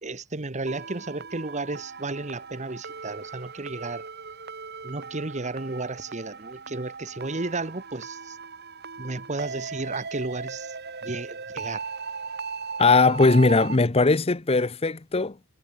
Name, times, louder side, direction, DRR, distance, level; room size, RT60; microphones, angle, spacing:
voice 1, 0.0-4.1 4.8-8.4 9.0-10.7 11.0-11.8, right 2 dB, 35° right, 1.3 m, -33 dB
sound 1, 0.7-13.8, right 5 dB, 50° right, 4.0 m, -38 dB
voice 2, 12.8-15.5, left 3 dB, 30° left, 0.8 m, -20 dB
head